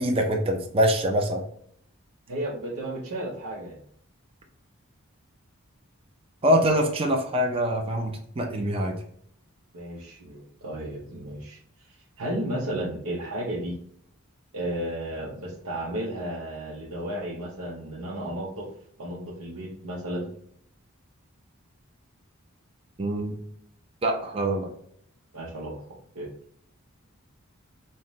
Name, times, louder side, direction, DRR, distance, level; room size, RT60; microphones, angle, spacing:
voice 1, 0.0-1.4 6.4-8.9 23.0-23.4 24.0-24.7, equal, 25° right, 2 dB, 0.5 m, -24 dB
voice 2, 2.3-3.8 9.7-11.6 12.2-13.8 14.5-18.7 19.0-20.3 25.3-25.7 26.1-26.3, right 1 dB, 85° right, -4 dB, 0.8 m, -33 dB
5.5 x 2.2 x 3.0 m, 0.66 s
head